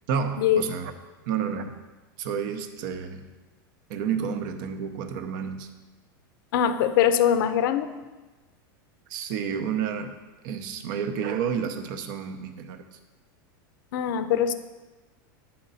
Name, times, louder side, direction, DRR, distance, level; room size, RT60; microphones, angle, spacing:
voice 1, 0.1-0.9 1.3-1.7 2.2-3.3 3.9-5.7 9.1-10.1 10.4-13.0, right 7 dB, 60° right, 8 dB, 0.7 m, -30 dB
voice 2, 6.5-7.9 13.9-14.5, left 9 dB, 70° left, 11 dB, 0.5 m, -22 dB
9.6 x 4.3 x 4.1 m, 1.2 s
supercardioid pair, 125°, 12 cm